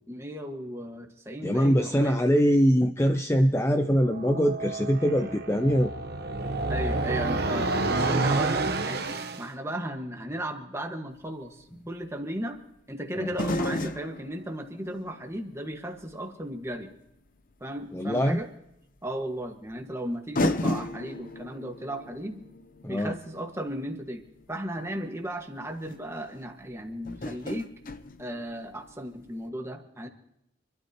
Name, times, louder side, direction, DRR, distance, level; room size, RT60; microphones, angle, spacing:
voice 1, 0.1-2.1 6.7-12.6 12.9-16.9 17.6-18.5 19.0-22.4 22.9-27.7 28.2-30.1, right 1 dB, 15° right, 3 dB, 1.5 m, -35 dB
voice 2, 1.4-5.9 13.2-13.3 17.9-18.4 22.8-23.2, equal, 15° left, 7 dB, 0.5 m, -23 dB
sound 1, 4.0-9.5, right 2 dB, 50° right, 1.0 m, -29 dB
sound 2, 11.2-11.3 13.3-16.3 16.8-16.9 18.4-18.5 19.7-19.8 20.4-24.5 25.4-25.5 25.8-26.0 27.1-29.0 29.2-29.3, left 1 dB, 45° left, 0.8 m, -33 dB
27.0 x 12.5 x 2.9 m, 0.80 s
head